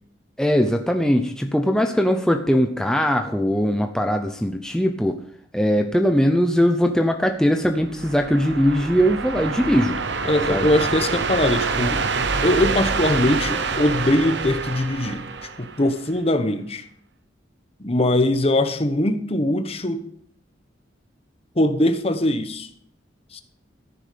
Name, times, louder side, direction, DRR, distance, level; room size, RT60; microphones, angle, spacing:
voice 1, 0.4-5.2 5.5-10.0 10.5-10.7, equal, 5° left, 4 dB, 0.7 m, -20 dB
sound 1, 7.7-16.2, right 4 dB, 65° right, 1.0 m, -26 dB
voice 2, 10.3-12.0 12.4-15.2 15.6-16.8 17.8-20.0 21.6-22.7 23.3-23.4, left 1 dB, 30° left, 9 dB, 1.1 m, -21 dB
13.5 x 11.0 x 5.2 m, 0.66 s
head